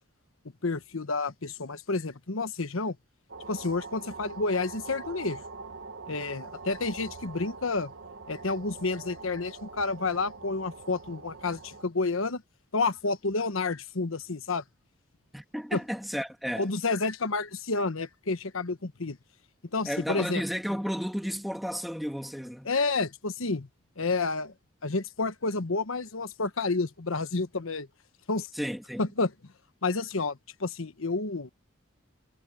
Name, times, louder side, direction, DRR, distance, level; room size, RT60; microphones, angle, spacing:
voice 1, 0.6-3.0 3.5-5.4 6.1-7.9 8.3-12.4 12.7-14.6 15.7-15.8 16.6-19.2 19.7-20.4 22.6-23.7 24.0-24.5 24.8-27.9 28.3-28.5 29.0-29.3 29.8-31.5, left 3 dB, 85° left, 1.2 m, -30 dB
sound 1, 3.3-11.8, right 3 dB, 70° right, 1.4 m, -44 dB
voice 2, 15.3-16.7 19.9-22.7 28.5-29.0, equal, ahead, 2.5 m, -33 dB
head